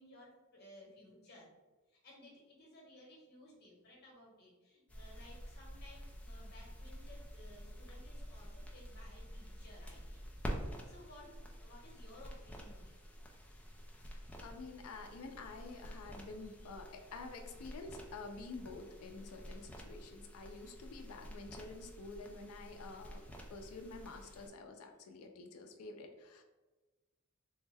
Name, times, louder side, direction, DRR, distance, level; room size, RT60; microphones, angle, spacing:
voice 1, 0.0-1.5 1.9-10.3 10.9-12.9 15.7-16.0, left 1 dB, 50° left, -3 dB, 1.0 m, -58 dB
sound 1, 4.9-24.5, equal, 5° left, 0.4 m, -49 dB
voice 2, 14.1-26.4, left 3 dB, 90° left, 4 dB, 0.4 m, -49 dB
3.5 x 2.1 x 3.3 m, 1.2 s
head